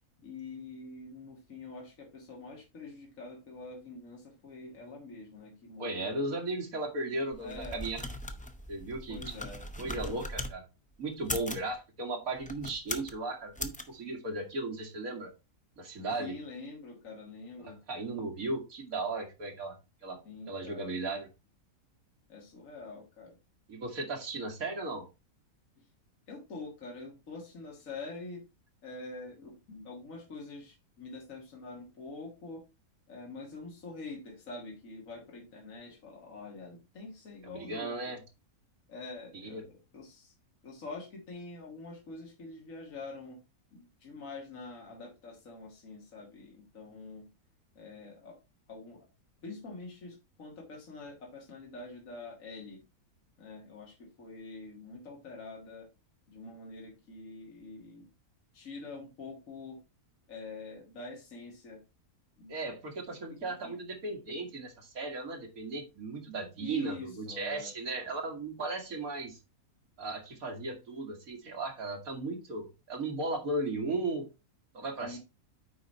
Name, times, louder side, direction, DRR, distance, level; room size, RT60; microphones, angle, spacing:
voice 1, 0.2-6.2 7.4-7.8 9.1-9.6 16.2-17.8 20.2-21.0 22.3-23.4 26.3-28.4 28.8-32.6 33.1-38.1 38.9-40.3 40.6-43.4 43.7-47.3 47.8-48.4 48.7-49.1 49.4-52.8 53.4-55.9 56.3-58.1 58.5-59.8 60.3-61.8 62.4-62.5 63.3-63.8 66.6-67.7 75.0-75.2, left 3 dB, 60° left, -1 dB, 2.1 m, -45 dB
voice 2, 5.8-8.0 8.7-9.4 9.8-10.7 11.0-15.3 15.8-16.3 17.6-19.8 20.0-20.2 20.5-21.3 23.7-25.0 37.4-38.2 39.3-39.6 62.5-69.4 70.0-74.2 74.7-75.2, right 2 dB, 70° right, 2 dB, 2.5 m, -36 dB
sound 1, 7.3-10.5 11.1-11.7 12.4-13.2 13.6-13.8, left 1 dB, 10° left, 0.4 m, -39 dB
9.3 x 4.0 x 4.2 m, 0.27 s
omnidirectional pair, 1.6 m